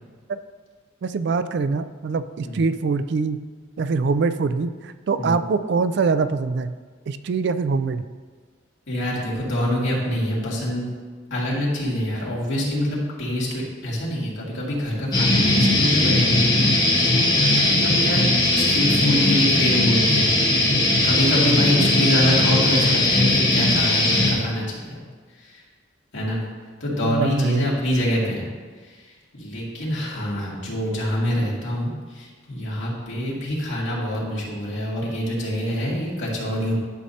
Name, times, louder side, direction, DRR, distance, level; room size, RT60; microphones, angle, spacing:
voice 1, 1.0-3.4 3.8-6.8 7.1-8.1 21.8-21.9 27.0-27.7, right 4 dB, 60° right, 12 dB, 0.3 m, -23 dB
voice 2, 8.9-10.9 11.3-18.2 18.6-20.3 21.0-25.0 25.4-25.6 26.1-26.4 26.8-28.5 28.8-29.1 29.3-36.7, left 1 dB, 70° left, -5 dB, 2.2 m, -25 dB
sound 1, 15.1-24.3, left 2 dB, 20° left, 1.2 m, -19 dB
11.0 x 6.4 x 2.8 m, 1.5 s
head